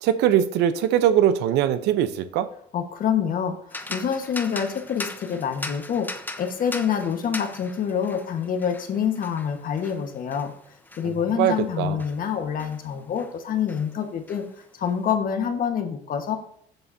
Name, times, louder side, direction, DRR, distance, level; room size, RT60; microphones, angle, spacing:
voice 1, 0.0-2.5 11.0-12.0, right 10 dB, 85° right, 12 dB, 0.7 m, -22 dB
voice 2, 2.7-6.1 6.4-10.5 11.0-14.4 14.7-16.4, left 7 dB, 55° left, 6 dB, 1.4 m, -26 dB
sound 1, 3.7-13.4 13.7-15.0, left 2 dB, 10° left, 0.9 m, -39 dB
14.5 x 7.8 x 2.7 m, 0.68 s
cardioid pair, 110°, 17 cm